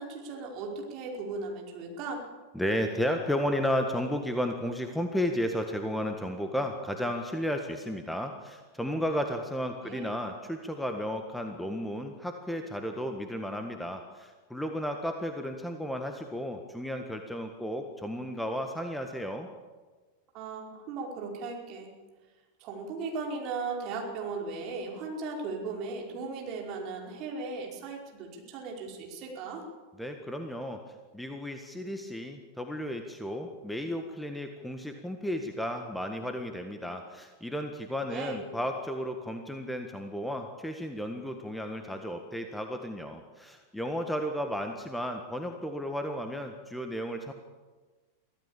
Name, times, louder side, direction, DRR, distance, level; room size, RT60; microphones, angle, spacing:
voice 1, 0.0-2.2 9.8-10.1 20.3-21.9 22.6-29.6 38.1-38.4, right 4 dB, 40° right, 0 dB, 5.0 m, -37 dB
voice 2, 2.5-19.5 30.0-30.8 31.1-47.3, equal, 5° left, 5 dB, 1.6 m, -33 dB
24.0 x 16.0 x 7.2 m, 1.3 s
figure-of-eight pair, 90°, 0 cm